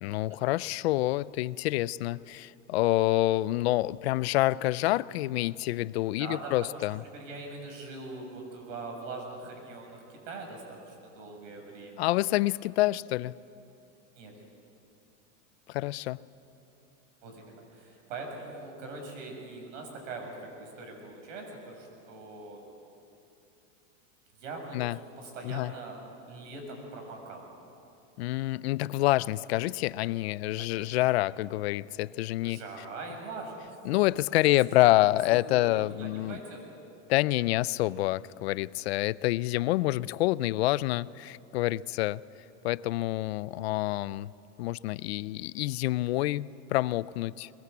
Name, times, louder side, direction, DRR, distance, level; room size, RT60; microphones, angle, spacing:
voice 1, 0.0-7.0 12.0-13.4 15.7-16.2 24.7-25.0 25.4-25.7 28.2-32.6 33.8-36.4 37.1-42.2 42.6-44.3 44.6-47.5, left 17 dB, 55° left, 20 dB, 0.5 m, -27 dB
voice 2, 6.2-12.1 14.2-14.3 17.2-22.6 24.4-26.0 26.3-27.5 30.6-30.9 32.4-33.5 34.7-36.6, right 3 dB, 70° right, 2 dB, 7.1 m, -42 dB
22.0 x 22.0 x 8.3 m, 2.7 s
supercardioid pair, 175°, 38 cm